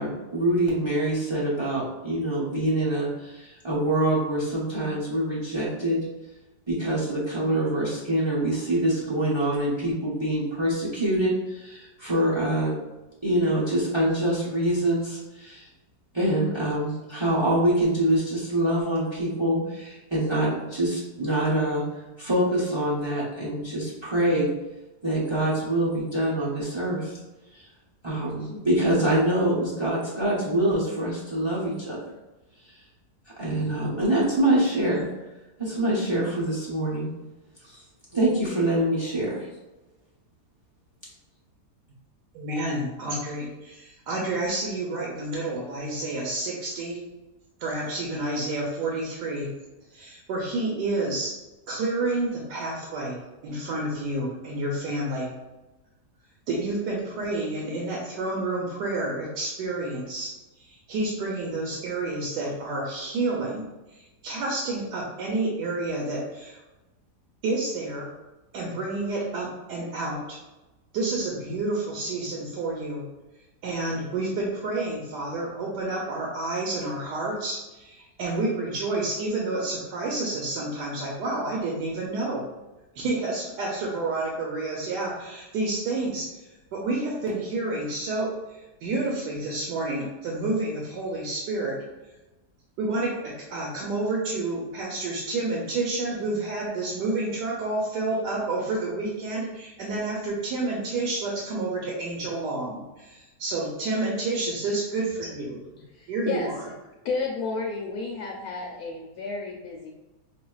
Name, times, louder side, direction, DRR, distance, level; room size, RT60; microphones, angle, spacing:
voice 1, 0.0-6.0 6.7-12.7 13.2-15.7 16.1-21.8 22.2-24.5 25.0-27.2 27.5-27.6 28.0-32.0 33.4-35.1 35.6-37.1 37.6-37.8 38.1-39.5, right 1 dB, 30° right, -6 dB, 0.5 m, -25 dB
voice 2, 42.3-47.0 47.6-49.5 49.9-51.3 51.7-55.3 56.5-60.3 60.6-63.6 63.9-66.6 67.4-68.1 68.5-70.4 70.9-73.1 73.6-82.5 82.9-91.8 92.8-105.6 106.1-106.5, right 2 dB, 85° right, -3 dB, 1.3 m, -29 dB
voice 3, 105.9-106.5 107.0-109.9, left 4 dB, 70° left, -1 dB, 1.0 m, -32 dB
5.4 x 2.5 x 2.3 m, 1.0 s
omnidirectional pair, 1.8 m